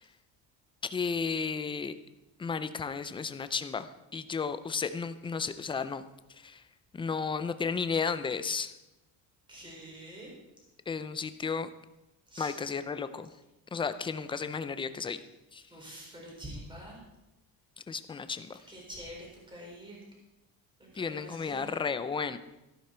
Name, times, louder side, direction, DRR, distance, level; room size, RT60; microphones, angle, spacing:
voice 1, 0.8-1.9 2.4-3.9 4.1-6.0 6.4-6.6 6.9-8.7 10.9-11.7 12.4-13.3 13.7-15.2 15.5-15.6 17.9-18.6 21.0-22.4, left 5 dB, 15° left, 12 dB, 0.4 m, -33 dB
voice 2, 9.5-10.3 12.3-12.6 15.7-17.0 18.7-20.0 20.8-21.7, right 1 dB, 10° right, -2 dB, 4.3 m, -46 dB
14.0 x 11.5 x 4.4 m, 0.95 s
cardioid pair, 165°, 40 cm